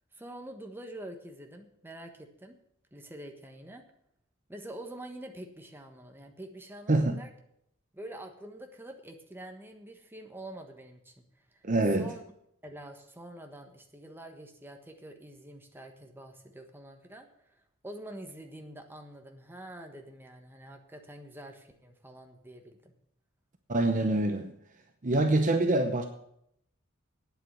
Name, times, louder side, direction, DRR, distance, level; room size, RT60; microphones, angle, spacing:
voice 1, 0.1-2.6 2.9-3.8 4.5-7.3 7.9-11.2 11.5-11.6 12.0-12.2 12.6-22.9, right 1 dB, 10° right, 1.4 m, -46 dB
voice 2, 6.9-7.2 11.6-12.1 23.7-24.5 25.0-26.0, right 2 dB, 40° right, 0.8 m, -25 dB
9.2 x 8.1 x 9.0 m
head